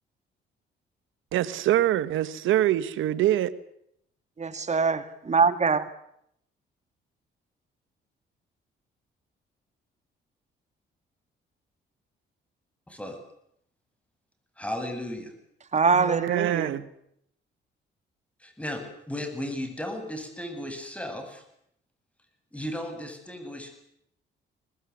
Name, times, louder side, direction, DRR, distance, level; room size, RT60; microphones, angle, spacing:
voice 1, 1.3-3.6 15.9-16.9, right 13 dB, 85° right, 14 dB, 1.5 m, -24 dB
voice 2, 4.4-5.8 15.7-16.7, right 5 dB, 35° right, 12 dB, 2.1 m, -23 dB
voice 3, 12.9-13.2 14.6-15.3 18.4-21.4 22.5-23.8, left 1 dB, 5° left, 6 dB, 7.9 m, -35 dB
23.5 x 20.0 x 9.8 m, 0.74 s
cardioid pair, 90°, 20 cm